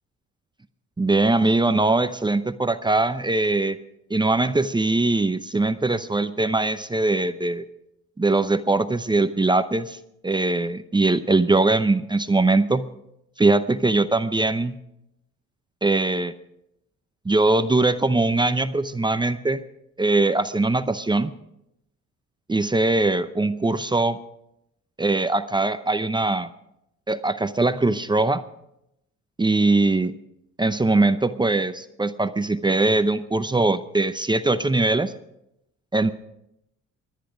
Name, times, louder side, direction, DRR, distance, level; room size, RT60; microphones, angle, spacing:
voice 1, 1.0-3.8 4.1-7.6 8.2-10.0 10.2-12.9 13.4-14.8 15.8-16.3 17.2-19.6 20.0-21.3 22.5-24.2 25.0-26.5 27.1-28.4 29.4-30.1 30.6-35.1 35.9-36.1, right 2 dB, 15° right, 11 dB, 0.7 m, -21 dB
23.5 x 10.5 x 5.0 m, 0.82 s
cardioid pair, 90°, 30 cm